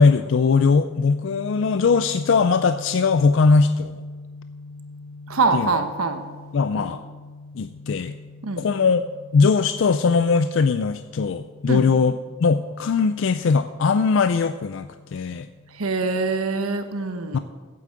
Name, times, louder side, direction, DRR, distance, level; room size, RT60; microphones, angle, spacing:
voice 1, 0.0-4.0 5.5-5.7 6.5-7.0 7.5-8.1 8.6-9.0 9.3-15.5 17.3-17.4, left 4 dB, 60° left, 10 dB, 0.4 m, -20 dB
sound 1, 0.7-16.4, left 3 dB, 85° left, 3.1 m, -43 dB
voice 2, 5.3-6.2 6.8-6.9 8.4-8.7 11.7-11.9 15.7-17.4, right 3 dB, 85° right, 7 dB, 1.1 m, -24 dB
8.5 x 8.5 x 7.7 m, 1.4 s
head